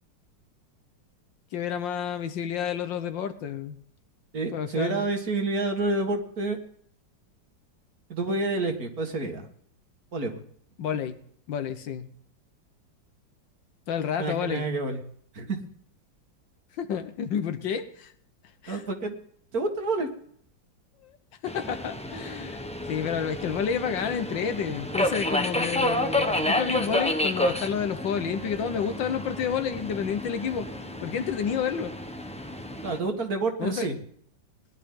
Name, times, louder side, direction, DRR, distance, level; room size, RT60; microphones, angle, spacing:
voice 1, 1.5-3.8 4.5-5.1 10.8-11.2 11.5-12.1 13.9-14.7 16.8-18.1 18.6-18.8 21.0-21.2 21.4-22.6 22.9-30.7 31.0-31.9 33.6-33.9, left 7 dB, 75° left, 9 dB, 1.7 m, -30 dB
voice 2, 4.3-6.6 8.1-9.5 10.1-10.4 14.2-15.0 15.3-15.6 18.7-19.1 19.5-20.1 32.8-34.0, right 2 dB, 50° right, 4 dB, 2.1 m, -28 dB
Subway metro underground, 21.5-33.0, left 1 dB, 5° left, 0.6 m, -30 dB
20.0 x 11.5 x 3.8 m, 0.63 s
omnidirectional pair, 2.1 m